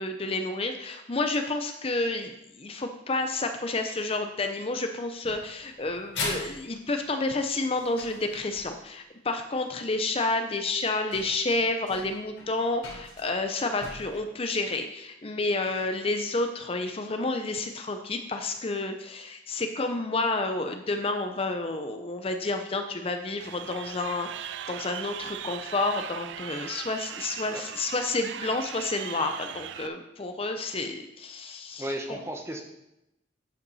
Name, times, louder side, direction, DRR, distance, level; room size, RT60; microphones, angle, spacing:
voice 1, 0.0-32.2, left 2 dB, 30° left, 6 dB, 0.6 m, -30 dB
sound 1, 5.2-8.9 10.2-10.3 10.8-10.9 11.1-14.2, left 2 dB, 80° left, 3.6 m, -39 dB
Crowd, 23.4-29.9, right 10 dB, 75° right, 0.3 m, -39 dB
voice 2, 31.8-32.6, equal, 15° right, 4 dB, 1.0 m, -34 dB
11.5 x 5.8 x 4.1 m, 0.86 s
head